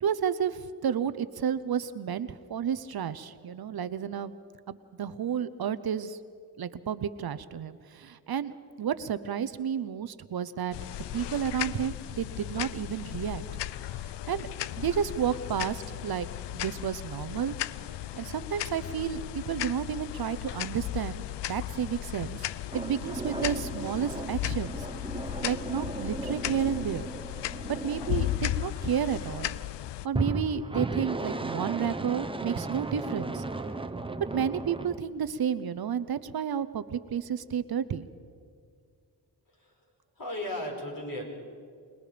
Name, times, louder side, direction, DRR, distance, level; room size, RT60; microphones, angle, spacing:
voice 1, 0.0-4.3 4.7-6.2 6.6-10.8 11.1-13.4 14.3-14.5 14.8-16.3 16.5-17.5 18.2-21.2 21.5-22.5 22.7-24.9 25.4-27.1 27.8-29.5 30.0-33.4 34.3-38.1, right 8 dB, 60° right, 13 dB, 0.8 m, -31 dB
sound 1, 10.7-30.1, left 14 dB, 80° left, 0.6 m, -36 dB
sound 2, 22.7-29.1 30.1-35.0, right 2 dB, 10° right, 1.0 m, -36 dB
voice 2, 40.2-41.3, left 1 dB, 50° left, 0 dB, 5.3 m, -35 dB
27.0 x 19.0 x 5.1 m, 2.2 s
cardioid pair, 65°, 41 cm